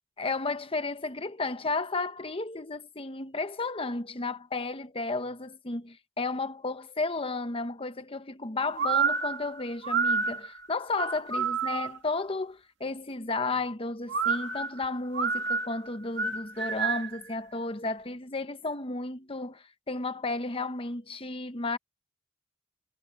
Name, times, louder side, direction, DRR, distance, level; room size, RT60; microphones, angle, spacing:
voice 1, 0.2-21.8, left 3 dB, 30° left, 1.1 m, -33 dB
sound 1, 8.8-12.1 14.1-17.2, right 5 dB, 70° right, 2.3 m, -29 dB
head